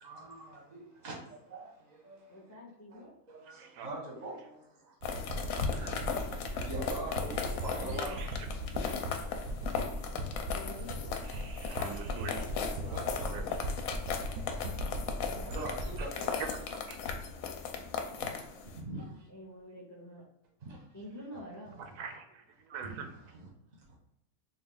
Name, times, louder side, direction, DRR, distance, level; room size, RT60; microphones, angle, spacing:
voice 1, 0.0-2.4 2.9-4.7 5.3-8.3 12.8-13.6 14.3-14.5 14.9-15.1 15.4-16.3 18.2-18.3 18.6-19.2 20.6-20.8 22.8-22.9 23.3-23.5, right 2 dB, 35° right, -1 dB, 0.8 m, -44 dB
voice 2, 2.3-3.1 5.8-6.3 10.5-11.1 14.7-15.6 19.3-20.2 20.9-21.8, left 1 dB, 20° left, -4 dB, 0.5 m, -48 dB
voice 3, 3.5-3.9 7.7-8.5 8.8-9.0 11.2-13.4 15.5-15.6 16.4-17.0 21.8-23.1, right 6 dB, 85° right, 6 dB, 1.1 m, -44 dB
sound 1, 5.0-18.8, left 6 dB, 70° left, 0.9 m, -37 dB
sound 2, 5.0-17.6, equal, 65° right, 0.9 m, -38 dB
3.5 x 2.3 x 3.8 m, 0.82 s
omnidirectional pair, 1.6 m